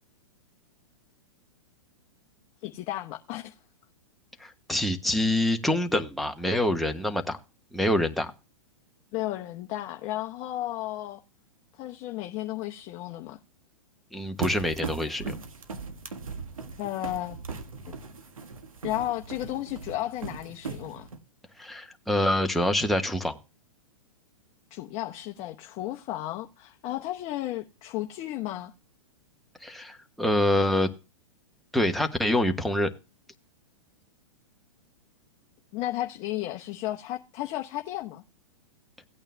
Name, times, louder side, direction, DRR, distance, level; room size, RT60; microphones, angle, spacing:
voice 1, 2.6-3.5 9.1-11.2 11.7-13.4 16.8-17.4 17.9-18.0 18.8-21.1 24.7-28.7 35.7-38.2, left 15 dB, 35° left, 0.9 m, -33 dB
voice 2, 4.4-7.4 7.7-8.3 14.1-15.4 21.6-23.4 29.6-30.9 31.7-32.9, left 1 dB, ahead, 1.2 m, -26 dB
sound 1, 14.4-21.2, right 4 dB, 90° right, 1.6 m, -39 dB
17.5 x 8.9 x 2.2 m
hypercardioid pair, 115°, 17 cm